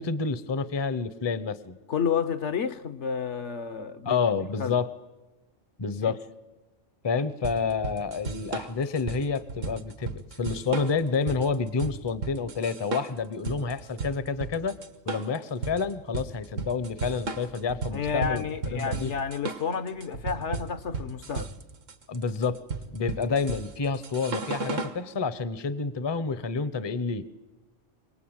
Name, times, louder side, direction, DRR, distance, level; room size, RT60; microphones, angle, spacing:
voice 1, 0.0-1.8 4.1-4.9 5.8-6.2 7.0-14.8 15.1-19.1 22.1-22.6 22.9-27.3, left 5 dB, 25° left, 0.7 m, -29 dB
voice 2, 1.9-4.2 4.6-4.7 6.0-6.1 17.9-21.5, left 6 dB, 65° left, 1.3 m, -30 dB
sound 1, 7.4-25.0, right 4 dB, 80° right, 1.8 m, -35 dB
26.0 x 19.0 x 8.9 m
omnidirectional pair, 1.3 m